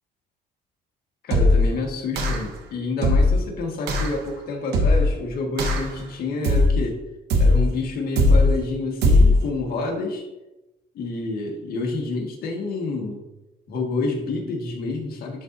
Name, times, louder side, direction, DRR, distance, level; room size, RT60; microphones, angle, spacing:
voice 1, 1.2-7.0 7.4-10.2 10.9-13.2 13.7-15.4, left 3 dB, 65° left, 1 dB, 1.6 m, -28 dB
sound 1, 1.3-1.7 2.2-2.6 3.0-3.4 3.9-4.2 4.7-5.2 5.6-6.0 6.4-6.9 7.3-7.7 8.2-8.6 9.0-9.4, left 2 dB, 75° right, 1.1 m, -18 dB
10.5 x 3.9 x 2.6 m, 0.96 s
cardioid pair, 110°, 17 cm